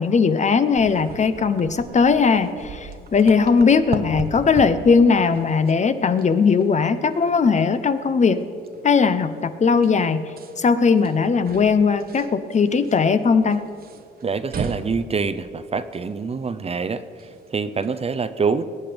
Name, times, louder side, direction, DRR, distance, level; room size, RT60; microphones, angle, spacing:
voice 1, 0.0-8.5 8.8-10.2 10.6-13.6, left 5 dB, 35° left, 12 dB, 0.7 m, -18 dB
sound 1, 0.7-18.1, right 5 dB, 50° right, 1.0 m, -39 dB
voice 2, 14.2-18.6, right 5 dB, 30° right, 11 dB, 0.6 m, -26 dB
20.0 x 8.6 x 5.2 m, 2.3 s
cardioid pair, 90°, 20 cm